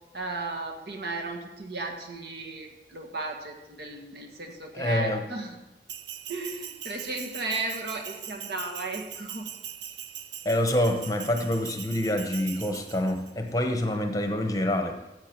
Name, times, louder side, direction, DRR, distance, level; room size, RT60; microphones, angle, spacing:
voice 1, 0.1-5.5 6.3-9.5, right 2 dB, 70° right, 2 dB, 1.6 m, -35 dB
voice 2, 4.7-5.2 10.4-15.0, left 1 dB, 20° left, 5 dB, 0.9 m, -26 dB
Bell, 5.9-13.3, right 10 dB, 90° right, 0.6 m, -41 dB
13.5 x 8.1 x 4.5 m, 0.99 s
head